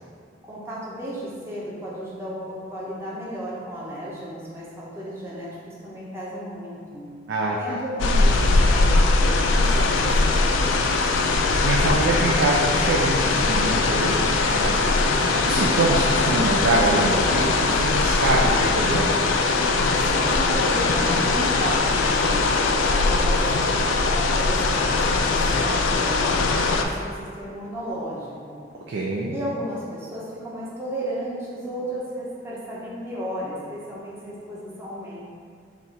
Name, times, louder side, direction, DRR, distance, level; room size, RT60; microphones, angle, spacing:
voice 1, 0.4-7.1 7.5-11.0 15.0-15.6 19.9-28.6 29.3-35.2, equal, 15° right, -7 dB, 0.7 m, -34 dB
voice 2, 7.3-7.8 11.6-14.9 15.4-19.3 28.9-29.4, right 2 dB, 75° right, -2 dB, 0.4 m, -24 dB
sound 1, 8.0-26.8, left 3 dB, 90° left, 0.3 m, -21 dB
4.1 x 2.4 x 4.3 m, 2.1 s
head